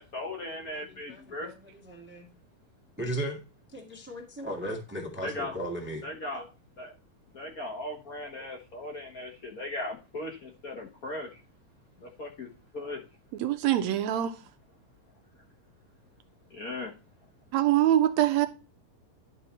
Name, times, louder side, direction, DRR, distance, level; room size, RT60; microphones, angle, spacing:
voice 1, 0.0-1.5 5.2-5.5 6.0-6.4 6.8-6.9 7.3-11.4 12.0-12.5 12.7-13.0 16.5-16.9, left 1 dB, 55° left, 1.0 m, -38 dB
voice 2, 0.7-1.5 1.8-2.3 3.0-3.4 3.7-6.0 6.3-6.4, right 1 dB, 5° right, 1.4 m, -36 dB
voice 3, 13.4-14.3 17.5-18.5, right 12 dB, 75° right, 1.9 m, -24 dB
11.5 x 4.6 x 4.4 m
omnidirectional pair, 3.4 m